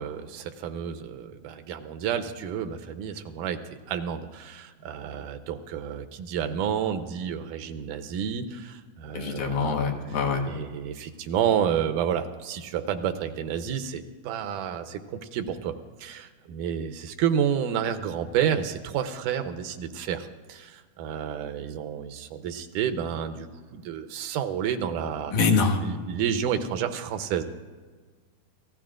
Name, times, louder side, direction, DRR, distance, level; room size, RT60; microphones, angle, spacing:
voice 1, 0.0-9.8 10.5-15.7 16.0-25.3 25.8-27.4, right 8 dB, 85° right, 7 dB, 2.4 m, -30 dB
voice 2, 9.1-10.4 25.3-25.8, left 4 dB, 75° left, 3 dB, 2.8 m, -24 dB
29.5 x 15.5 x 2.5 m, 1.4 s
omnidirectional pair, 3.6 m